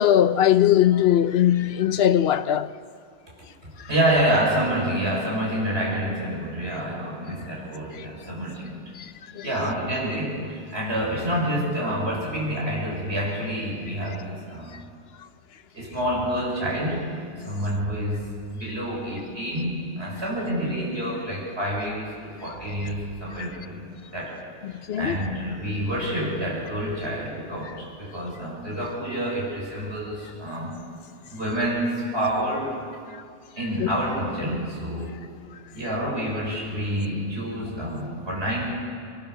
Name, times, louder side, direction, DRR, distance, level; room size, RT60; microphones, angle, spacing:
voice 1, 0.0-2.7 3.8-3.9 7.9-8.1 8.9-9.5 14.7-14.8 23.3-23.5 24.6-25.2 27.6-27.8 33.1-33.2 33.8-33.9, left 10 dB, 65° left, 0.9 m, -21 dB
voice 2, 3.9-8.8 9.4-14.8 15.7-17.1 17.4-24.4 24.9-30.8 31.3-32.8 33.6-35.2 35.7-38.7, equal, 70° right, 6.9 m, -28 dB
24.5 x 22.5 x 6.8 m
omnidirectional pair, 1.1 m